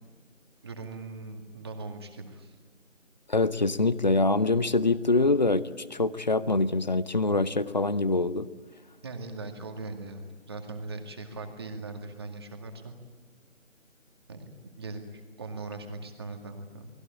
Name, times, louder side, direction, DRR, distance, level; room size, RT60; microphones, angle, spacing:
voice 1, 0.6-2.6 9.0-12.9 14.3-14.4 14.7-16.9, right 3 dB, 20° right, 4 dB, 2.1 m, -40 dB
voice 2, 3.3-5.6 5.9-8.5, left 2 dB, 35° left, 17 dB, 0.8 m, -24 dB
29.0 x 20.5 x 8.8 m, 1.4 s
figure-of-eight pair, 160°, 38 cm